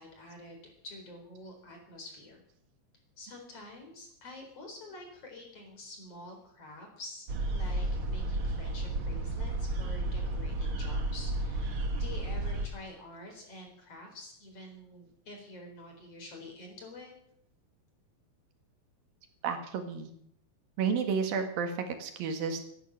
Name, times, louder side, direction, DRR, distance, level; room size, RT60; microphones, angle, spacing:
voice 1, 0.0-2.4 3.2-17.1, left 1 dB, 40° left, 2 dB, 5.2 m, -48 dB
sound 1, 7.3-12.7, right 2 dB, 45° right, 1.9 m, -32 dB
voice 2, 19.4-20.1 20.8-22.6, right 6 dB, 80° right, 5 dB, 3.6 m, -31 dB
16.0 x 11.0 x 7.5 m, 0.71 s
omnidirectional pair, 4.1 m